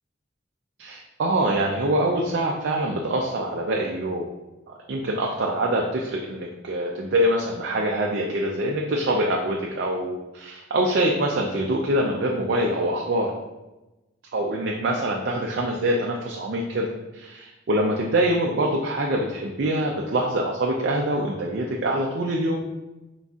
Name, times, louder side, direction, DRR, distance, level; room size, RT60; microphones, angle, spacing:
voice 1, 0.8-4.3 4.9-13.3 14.3-22.6, right 1 dB, 60° right, -1 dB, 0.4 m, -24 dB
4.5 x 4.0 x 2.4 m, 1.0 s
head